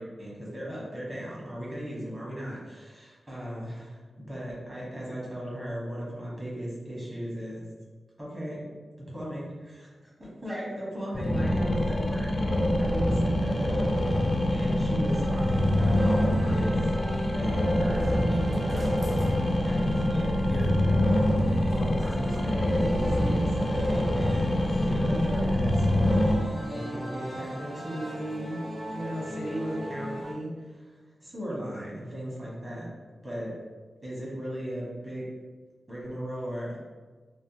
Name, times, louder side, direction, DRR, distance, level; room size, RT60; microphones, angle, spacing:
voice 1, 0.0-4.0 4.3-7.6 8.2-8.7 9.0-16.7 17.3-18.9 19.6-28.6 28.9-30.9 31.2-32.9 33.2-33.5 34.0-35.3 35.9-36.8, equal, 25° right, -6 dB, 1.0 m, -37 dB
sound 1, 11.1-26.3, left 1 dB, 30° left, 0.3 m, -25 dB
sound 2, 15.1-30.3, equal, 45° right, 0.7 m, -39 dB
3.3 x 2.1 x 2.7 m, 1.4 s
wide cardioid pair, 145°, 0 cm